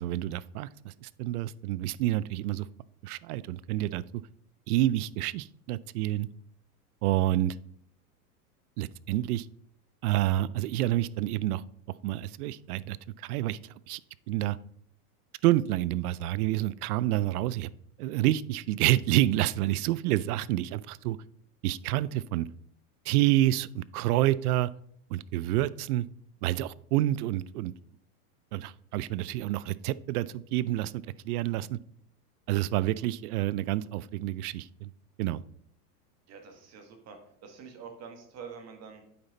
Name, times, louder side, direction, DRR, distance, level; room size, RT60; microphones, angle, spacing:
voice 1, 0.0-2.7 3.0-4.2 4.7-6.3 7.0-7.6 8.8-9.5 10.0-11.6 12.0-14.0 14.3-14.6 15.4-17.7 18.0-21.2 21.6-22.5 23.1-24.7 25.1-26.1 26.4-27.7 28.5-31.8 32.5-34.9 35.2-35.4, right 14 dB, 75° right, 19 dB, 0.6 m, -28 dB
voice 2, 36.3-37.2 37.4-39.0, right 6 dB, 35° right, 4 dB, 1.7 m, -46 dB
8.7 x 5.9 x 4.0 m, 0.66 s
supercardioid pair, 125°, 46 cm